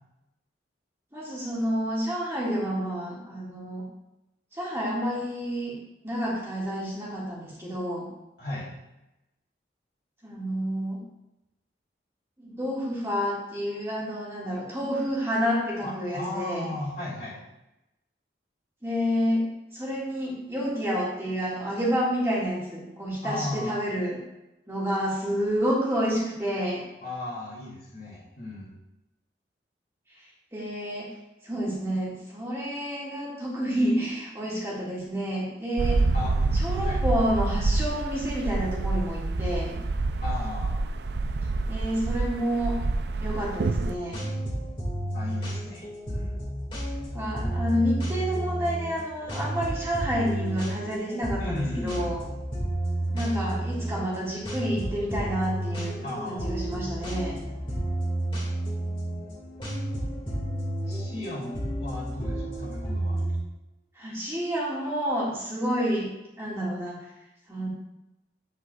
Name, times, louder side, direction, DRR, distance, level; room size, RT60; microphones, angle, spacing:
voice 1, 1.1-3.9 4.5-5.8 6.0-8.1 10.2-11.0 12.4-16.6 18.8-19.4 19.7-24.2 24.7-26.8 30.5-31.1 31.4-36.0 36.5-39.8 41.7-42.7 43.2-44.2 47.1-52.2 53.1-57.4 64.0-66.1 66.4-67.0 67.5-67.7, equal, 15° right, -7 dB, 2.0 m, -29 dB
voice 2, 8.4-8.7 15.8-17.4 23.2-23.8 27.0-28.7 36.1-36.5 36.8-37.0 40.2-40.8 45.1-46.4 51.4-52.1 56.0-56.5 60.8-63.2, left 1 dB, 55° left, -4 dB, 2.6 m, -36 dB
sound 1, 35.8-44.0, right 3 dB, 70° right, 0.5 m, -27 dB
sound 2, 43.7-63.4, right 1 dB, 30° left, 2.1 m, -31 dB
8.8 x 7.9 x 2.4 m, 0.95 s
head